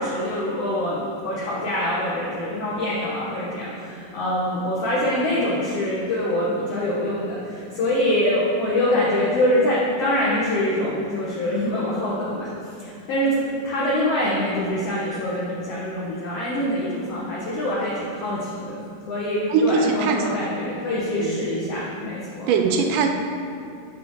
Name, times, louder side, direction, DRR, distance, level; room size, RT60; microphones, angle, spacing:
voice 1, 0.0-18.8 19.1-22.5, left 1 dB, 70° left, -6 dB, 1.4 m, -24 dB
voice 2, 19.5-20.4 21.2-21.4 22.5-23.1, right 5 dB, 80° right, 4 dB, 2.0 m, -21 dB
6.8 x 3.4 x 6.2 m, 2.5 s
omnidirectional pair, 3.9 m